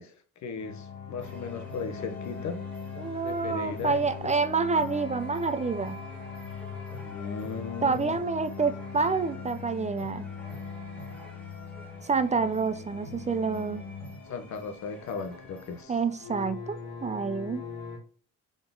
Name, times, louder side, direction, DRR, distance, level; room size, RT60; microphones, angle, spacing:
voice 1, 0.0-2.6 3.2-4.3 7.0-8.2 14.3-16.0, left 5 dB, 65° left, 0.9 m, -37 dB
sound 1, 0.6-18.0, left 6 dB, 85° left, 1.5 m, -41 dB
sound 2, 1.2-15.8, right 2 dB, 5° left, 2.1 m, -50 dB
voice 2, 3.0-6.0 7.8-10.3 12.0-13.8 15.9-17.6, right 4 dB, 25° right, 0.4 m, -28 dB
3.7 x 3.7 x 3.7 m
cardioid pair, 90°, 30 cm